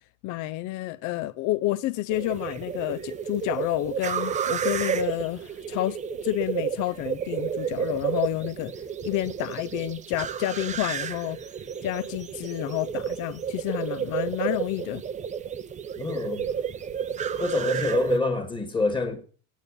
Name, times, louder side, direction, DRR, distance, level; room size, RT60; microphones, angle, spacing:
voice 1, 0.2-8.7 9.0-11.4 11.8-15.0, left 16 dB, 60° left, 0.5 m, -29 dB
sound 1, 2.1-18.2, right 7 dB, 20° right, 0.5 m, -31 dB
voice 2, 16.0-16.4 17.4-19.3, left 3 dB, 15° left, 1.8 m, -26 dB
9.2 x 8.4 x 8.2 m
cardioid pair, 170°, 35 cm